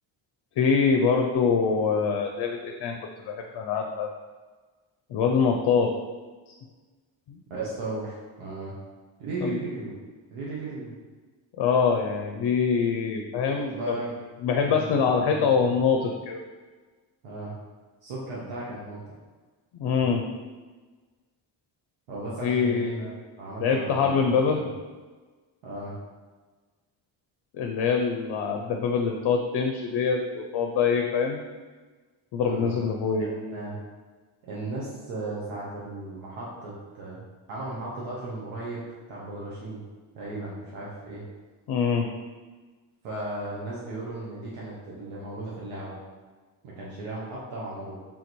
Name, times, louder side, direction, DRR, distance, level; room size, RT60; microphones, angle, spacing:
voice 1, 0.6-3.0 3.2-4.1 5.1-5.9 7.3-7.4 9.4-9.6 11.6-14.0 14.4-16.4 19.7-20.3 22.4-22.9 23.6-24.6 27.5-31.4 32.3-33.3 41.7-42.1, left 5 dB, 60° left, 3 dB, 0.5 m, -24 dB
voice 2, 7.5-8.7 9.2-9.9 10.3-11.0 13.5-14.1 14.6-15.7 17.2-17.5 18.0-19.0 19.8-20.1 22.1-23.1 23.4-24.7 25.6-25.9 32.4-32.9 33.3-33.8 34.4-37.2 37.5-38.8 39.1-39.8 40.1-41.2 43.0-46.0 46.6-48.0, right 2 dB, 85° right, -6 dB, 0.9 m, -36 dB
3.7 x 2.6 x 4.4 m, 1.3 s
cardioid pair, 70°, 49 cm